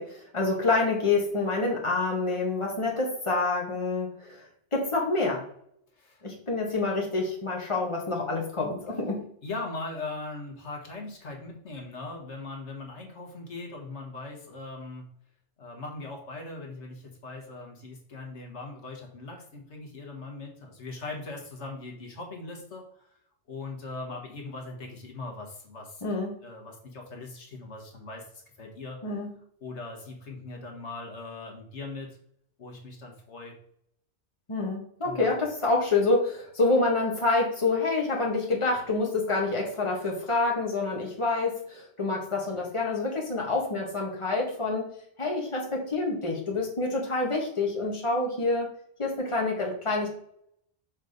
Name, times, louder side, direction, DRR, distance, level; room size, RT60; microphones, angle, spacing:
voice 1, 0.0-4.4 4.7-5.5 6.2-9.2 26.0-26.3 29.0-29.3 34.5-44.9 45.2-48.7 49.0-50.1, left 3 dB, 25° left, -1 dB, 1.7 m, -27 dB
voice 2, 6.0-6.3 9.4-15.1 15.6-23.1 23.5-26.0 26.4-29.0 29.6-32.2 32.6-33.5 35.0-35.4, left 3 dB, 85° left, 1 dB, 1.7 m, -40 dB
6.5 x 4.0 x 5.0 m, 0.67 s
omnidirectional pair, 1.2 m